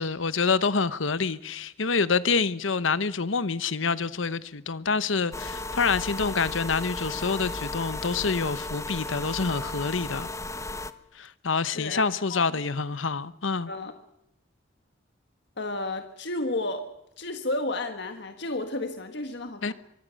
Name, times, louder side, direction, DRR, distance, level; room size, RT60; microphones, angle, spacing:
voice 1, 0.0-10.3 11.1-13.7 19.6-19.7, left 4 dB, 80° left, 1.0 m, -27 dB
sound 1, 5.3-10.9, left 2 dB, 15° left, 0.9 m, -35 dB
voice 2, 11.7-12.6 13.7-13.9 15.6-16.8 17.2-19.7, left 2 dB, 60° left, 1.6 m, -32 dB
24.5 x 23.0 x 6.5 m
head